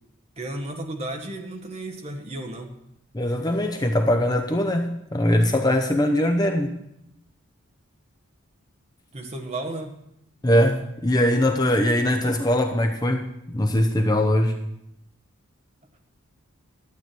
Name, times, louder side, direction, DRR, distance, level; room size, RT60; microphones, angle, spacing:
voice 1, 0.4-2.7 9.1-10.0, right 1 dB, 30° right, 3 dB, 1.4 m, -33 dB
voice 2, 3.1-6.7 10.4-14.5, left 1 dB, 20° left, 4 dB, 0.7 m, -21 dB
12.0 x 8.4 x 6.0 m, 0.81 s
head